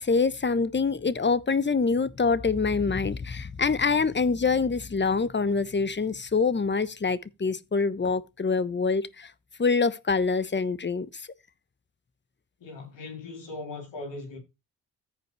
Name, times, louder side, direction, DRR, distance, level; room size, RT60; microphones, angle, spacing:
voice 1, 0.0-9.3 9.6-11.2, left 4 dB, 25° left, 1.1 m, -25 dB
voice 2, 12.6-14.4, left 3 dB, 70° left, 3.6 m, -39 dB
14.5 x 5.3 x 3.3 m
hypercardioid pair, 45°, 45 cm